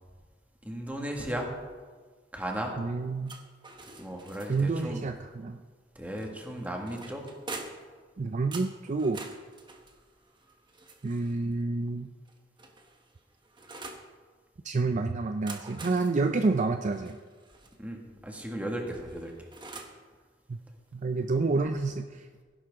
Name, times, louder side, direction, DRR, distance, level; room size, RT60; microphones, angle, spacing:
voice 1, 0.6-1.5 2.3-2.8 4.0-5.0 6.0-7.3 17.8-19.5, right 1 dB, 10° right, 1 dB, 1.8 m, -36 dB
voice 2, 2.8-3.3 4.5-5.6 8.2-9.2 11.0-12.1 14.6-17.2 20.5-20.6 20.9-22.3, right 3 dB, 40° right, 7 dB, 0.4 m, -29 dB
sound 1, 3.3-4.8 6.2-8.0 8.5-11.4 12.3-14.1 15.2-17.8 18.9-20.0, right 3 dB, 25° right, 1.2 m, -46 dB
16.5 x 10.5 x 3.6 m, 1.5 s
head